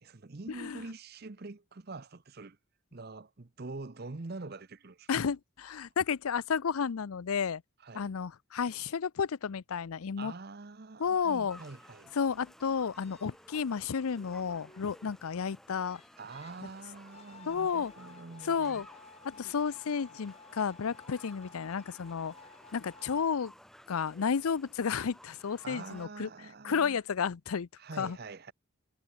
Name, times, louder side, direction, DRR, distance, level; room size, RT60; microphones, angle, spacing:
voice 1, 0.0-2.6 2.9-5.1 7.8-8.1 10.2-12.1 16.2-18.8 25.6-27.0 27.8-28.5, right 3 dB, 45° right, 0.8 m, -45 dB
voice 2, 5.1-7.6 7.9-10.3 11.0-11.6 12.1-16.0 17.5-17.9 18.5-18.9 19.2-22.3 22.7-23.5 23.9-26.3 26.6-27.7 28.0-28.2, left 6 dB, 85° left, 0.5 m, -32 dB
sound 1, 11.5-26.1, equal, ahead, 2.4 m, -56 dB
sound 2, 12.9-23.3, left 4 dB, 30° left, 4.9 m, -56 dB
head